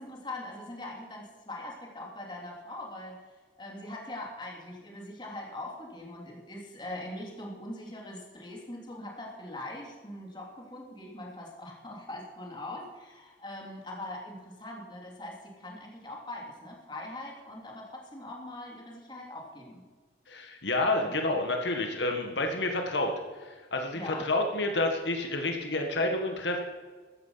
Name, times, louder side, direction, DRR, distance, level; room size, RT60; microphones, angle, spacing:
voice 1, 0.0-3.2 3.6-19.8 21.0-21.1 23.9-24.3, left 1 dB, 25° left, -1 dB, 3.2 m, -42 dB
voice 2, 20.3-23.1 23.4-26.6, left 2 dB, 85° left, 3 dB, 1.7 m, -29 dB
15.0 x 12.5 x 5.8 m, 1.4 s
head